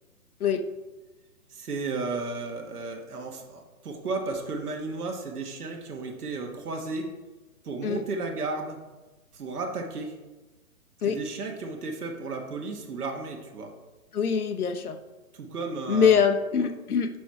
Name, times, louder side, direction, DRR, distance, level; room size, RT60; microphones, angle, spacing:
voice 1, 1.5-7.1 7.6-8.8 9.3-10.1 11.0-13.7 15.3-16.2 16.6-16.7, right 3 dB, 90° right, 2 dB, 1.3 m, -34 dB
voice 2, 14.1-15.0 15.9-17.1, left 7 dB, 75° left, 8 dB, 0.9 m, -23 dB
6.0 x 4.5 x 4.6 m, 1.1 s
hypercardioid pair, 175°, 44 cm